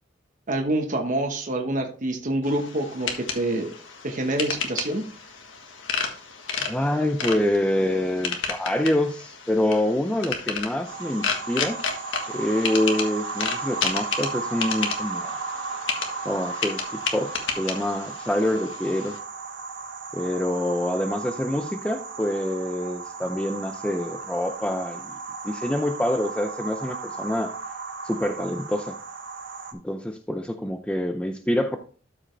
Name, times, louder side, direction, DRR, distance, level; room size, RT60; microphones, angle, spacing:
voice 1, 0.5-3.7 4.0-5.1, right 1 dB, 40° right, 3 dB, 1.1 m, -26 dB
sound 1, 2.4-19.2, left 5 dB, 75° left, 1.5 m, -32 dB
voice 2, 6.6-11.8 12.3-15.4 16.2-19.2 20.1-25.1 25.4-27.5 28.0-29.0 29.8-31.8, left 1 dB, 5° left, 6 dB, 0.4 m, -26 dB
sound 2, 10.8-29.7, right 4 dB, 65° right, 1.2 m, -35 dB
12.5 x 5.0 x 3.3 m, 0.40 s
head